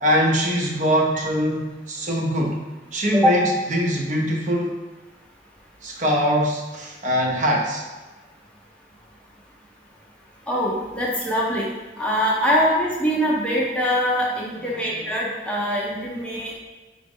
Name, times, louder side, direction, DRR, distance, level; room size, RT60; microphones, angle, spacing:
voice 1, 0.0-2.6 2.9-4.7 5.8-7.8 14.6-14.8, equal, 45° right, -1 dB, 0.6 m, -22 dB
voice 2, 10.5-11.7 12.0-16.6, equal, 5° left, -4 dB, 0.6 m, -23 dB
4.8 x 2.0 x 3.6 m, 1.2 s
head